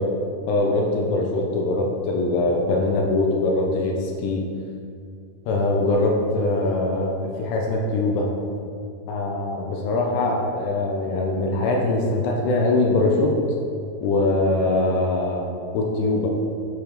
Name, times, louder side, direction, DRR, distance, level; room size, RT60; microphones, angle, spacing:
voice 1, 0.5-4.4 5.5-8.3 9.1-13.3 14.0-15.5 15.7-16.3, left 2 dB, 90° left, 0 dB, 2.8 m, -22 dB
7.4 x 4.5 x 5.0 m, 2.4 s
omnidirectional pair, 4.6 m